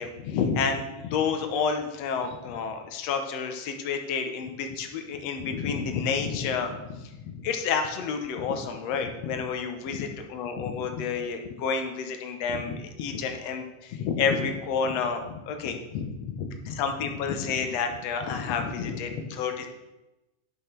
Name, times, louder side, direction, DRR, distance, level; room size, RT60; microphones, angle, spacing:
voice 1, 0.0-19.7, left 6 dB, 65° left, 6 dB, 1.8 m, -30 dB
10.5 x 6.2 x 4.5 m, 1.0 s
omnidirectional pair, 3.6 m